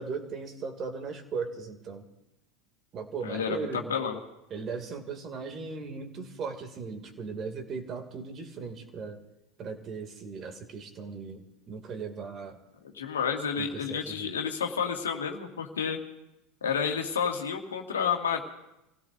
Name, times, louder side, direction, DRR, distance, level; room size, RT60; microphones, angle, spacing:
voice 1, 0.0-2.0 2.9-4.0 4.5-9.2 9.6-12.6 13.6-14.3, right 5 dB, 40° right, 5 dB, 2.4 m, -38 dB
voice 2, 3.2-4.2 12.8-16.0 16.6-18.4, left 7 dB, 85° left, 3 dB, 1.8 m, -30 dB
28.5 x 16.5 x 2.6 m, 0.92 s
hypercardioid pair, 85°, 0 cm